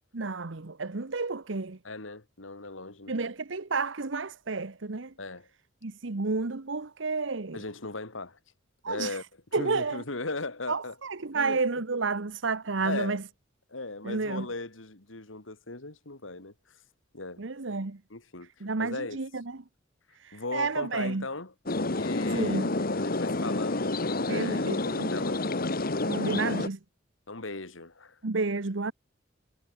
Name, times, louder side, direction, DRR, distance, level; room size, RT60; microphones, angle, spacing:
voice 1, 0.1-1.8 3.1-5.1 5.8-7.6 8.8-9.2 9.5-10.0 10.7-13.2 14.0-14.4 17.4-18.0 18.6-19.4 20.2-21.2 22.3-22.7 24.3-25.1 26.0-26.8 28.2-28.9, right 3 dB, 70° right, 1.1 m, -31 dB
voice 2, 1.8-3.2 5.2-5.5 7.5-8.4 8.9-9.2 9.5-11.0 11.3-11.6 12.8-13.2 13.7-16.8 17.1-17.4 18.1-19.2 20.3-21.5 21.9-22.6 22.9-25.4 26.0-26.2 27.3-28.2, left 3 dB, 80° left, 2.8 m, -38 dB
sound 1, 21.7-26.7, left 2 dB, 50° left, 1.7 m, -29 dB
head